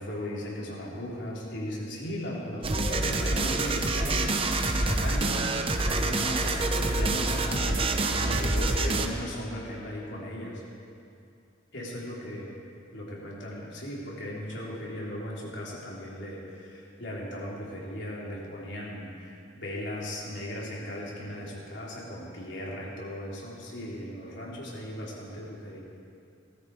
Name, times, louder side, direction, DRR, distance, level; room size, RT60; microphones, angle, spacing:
voice 1, 0.0-10.6 11.7-12.5 12.9-25.8, equal, 70° left, -4 dB, 3.6 m, -37 dB
sound 1, 2.6-9.1, right 2 dB, 30° right, 0.9 m, -27 dB
18.0 x 13.5 x 4.9 m, 2.5 s
head